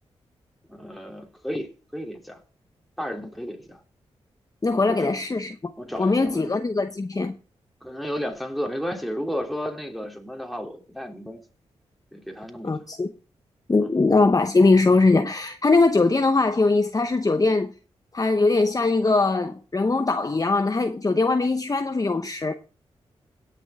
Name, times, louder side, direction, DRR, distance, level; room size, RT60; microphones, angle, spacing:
voice 1, 0.7-2.4 3.0-3.8 4.7-5.1 5.8-6.5 7.8-11.4 12.1-12.8 13.8-13.9, equal, ahead, 3.1 m, -33 dB
voice 2, 4.6-5.7 6.0-7.3 12.6-13.1 13.7-17.7 18.1-22.5, left 3 dB, 30° left, 0.9 m, -21 dB
17.5 x 7.0 x 3.6 m
cardioid pair, 45°, 12 cm